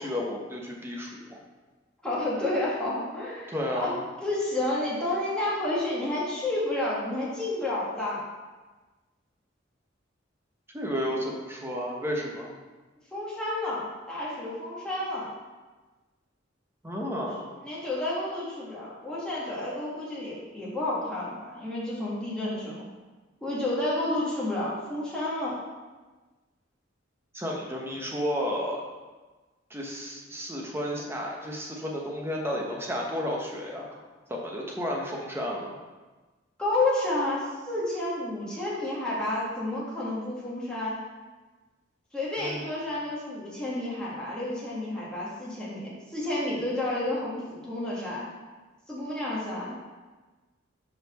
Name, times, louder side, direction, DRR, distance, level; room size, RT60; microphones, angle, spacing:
voice 1, 0.0-1.4 3.5-4.0 10.7-12.5 16.8-17.5 27.3-28.8 29.7-33.9 34.3-35.8 42.4-42.7, equal, 10° right, -1 dB, 0.9 m, -32 dB
voice 2, 2.0-8.2 13.1-15.3 17.6-22.8 23.4-25.6 36.6-41.0 42.1-48.3 48.9-49.9, left 1 dB, 5° left, -8 dB, 1.8 m, -30 dB
5.6 x 4.2 x 6.3 m, 1.3 s
head